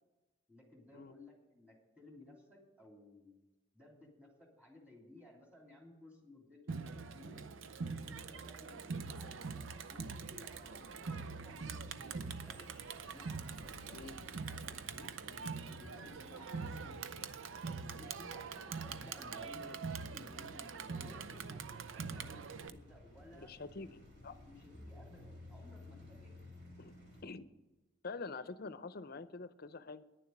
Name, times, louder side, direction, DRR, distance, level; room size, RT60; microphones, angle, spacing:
voice 1, 0.5-3.4 3.7-7.4 7.7-12.7 13.1-14.2 14.5-18.5 18.8-23.5 24.5-26.4, left 2 dB, 10° right, -1 dB, 2.9 m, -58 dB
Crowd, 6.7-22.7, right 5 dB, 90° right, 0.6 m, -44 dB
sound 1, 10.2-27.2, left 1 dB, 65° right, 3.7 m, -57 dB
voice 2, 23.3-24.4 26.8-26.9 27.2-27.5 28.0-30.0, left 3 dB, 50° left, 13 dB, 0.6 m, -46 dB
10.0 x 7.2 x 9.0 m, 1.1 s
head